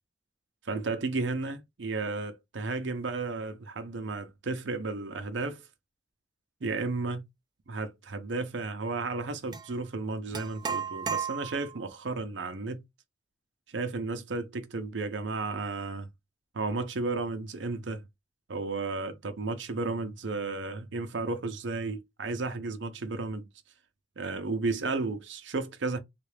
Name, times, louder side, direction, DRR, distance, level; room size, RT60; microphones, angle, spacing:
voice 1, 0.7-5.7 6.6-7.2 7.7-12.8 13.7-16.1 16.5-18.1 18.5-23.5 24.2-26.0, right 3 dB, 75° right, 0.6 m, -33 dB
sound 1, 9.5-9.7 10.3-11.8, right 6 dB, 20° right, 0.3 m, -34 dB
3.6 x 2.4 x 3.3 m
head